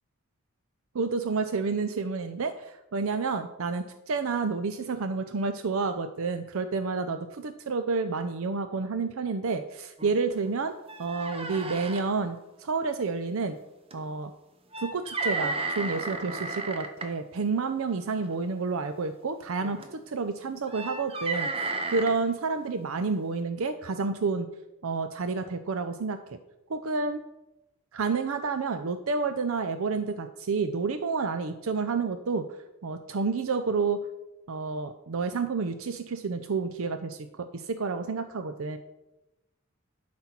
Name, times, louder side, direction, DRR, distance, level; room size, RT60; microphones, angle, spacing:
voice 1, 0.9-10.7 11.0-13.6 13.9-14.3 14.8-21.5 21.9-24.5 24.8-26.4 26.7-27.2 27.9-32.5 32.8-34.0 34.5-38.8, right 4 dB, 70° right, 9 dB, 0.5 m, -30 dB
sound 1, 10.0-10.1 10.5-10.6 10.9-12.0 13.9-14.0 14.7-17.1 18.2-18.5 19.6-20.0 20.7-22.1, right 3 dB, 25° right, 0.8 m, -33 dB
11.5 x 4.3 x 5.9 m, 0.97 s
head